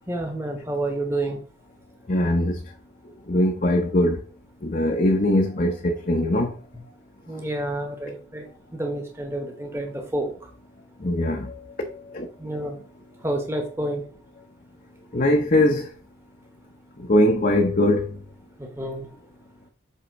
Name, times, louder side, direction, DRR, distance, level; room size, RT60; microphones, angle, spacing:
voice 1, 0.1-1.4 6.7-6.8 7.3-8.5 8.7-10.3 12.4-12.8 13.2-14.0 18.6-19.1, right 1 dB, 15° right, 1.1 m, -29 dB
voice 2, 2.1-2.6 3.3-4.2 4.6-6.5 11.0-11.5 12.1-12.3 15.1-15.9 17.1-18.2, left 1 dB, 40° left, 0.7 m, -21 dB
8.2 x 3.6 x 5.2 m
head